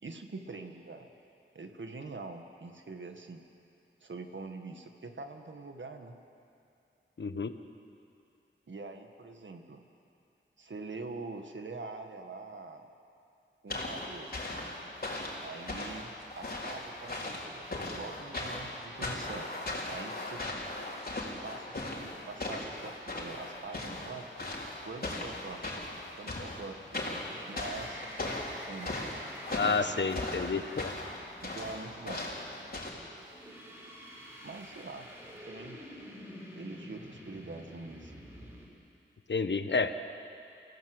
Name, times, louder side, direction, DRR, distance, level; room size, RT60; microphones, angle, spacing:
voice 1, 0.0-1.1 1.5-3.4 4.0-6.2 8.7-9.8 10.6-12.9 13.6-14.3 15.4-17.6 17.9-19.5 19.9-20.4 21.4-24.3 24.8-25.7 26.2-29.2 31.4-32.2 34.4-35.1 35.4-35.8 36.6-38.1, right 3 dB, 70° right, 5 dB, 1.8 m, -44 dB
voice 2, 7.2-7.5 29.5-30.9 39.3-40.0, left 4 dB, 65° left, 9 dB, 1.1 m, -30 dB
sound 1, 13.7-32.9, left 2 dB, 50° left, 4.0 m, -38 dB
sound 2, 27.2-31.7 33.2-38.7, equal, 10° right, 5.1 m, -49 dB
28.5 x 16.5 x 8.0 m, 2.6 s
wide cardioid pair, 90°, 20 cm